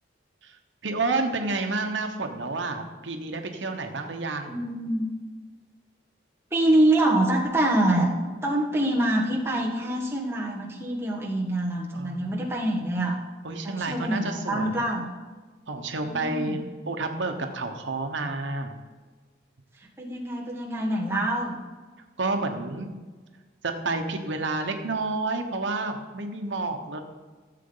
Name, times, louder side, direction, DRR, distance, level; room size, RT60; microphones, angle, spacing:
voice 1, 0.8-4.6 11.9-12.3 13.4-14.8 15.7-16.6 16.9-18.8 22.2-22.9 23.6-27.0, right 3 dB, 85° right, 4 dB, 1.1 m, -30 dB
voice 2, 4.5-5.1 6.5-8.1 8.4-13.2 13.6-15.1 16.0-16.6 20.0-21.6, right 1 dB, 15° right, -3 dB, 1.5 m, -25 dB
14.5 x 7.6 x 3.9 m, 1.4 s
head